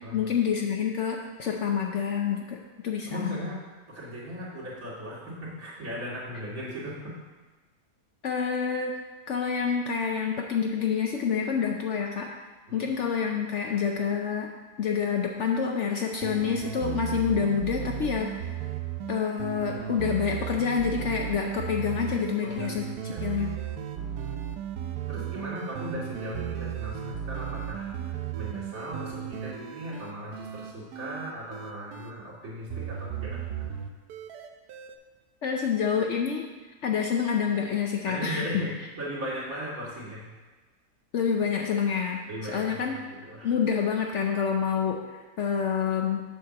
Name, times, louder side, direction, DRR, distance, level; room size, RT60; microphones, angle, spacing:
voice 1, 0.1-2.6 2.8-3.4 8.2-8.9 9.3-12.3 12.7-14.5 14.8-18.5 19.1-23.5 35.4-36.4 36.8-38.5 41.1-42.2 42.5-43.0 43.4-45.0 45.4-46.2, left 7 dB, 60° left, 1 dB, 0.8 m, -27 dB
voice 2, 3.0-3.6 3.9-7.1 12.7-12.9 22.4-22.7 23.1-23.4 24.0-24.3 25.1-33.4 38.1-40.2 42.3-42.9 43.2-43.5, equal, 60° right, -7 dB, 2.7 m, -37 dB
sound 1, 16.2-32.1 32.7-35.0, right 10 dB, 80° right, 1.2 m, -35 dB
7.4 x 4.4 x 6.4 m, 1.3 s
omnidirectional pair, 1.6 m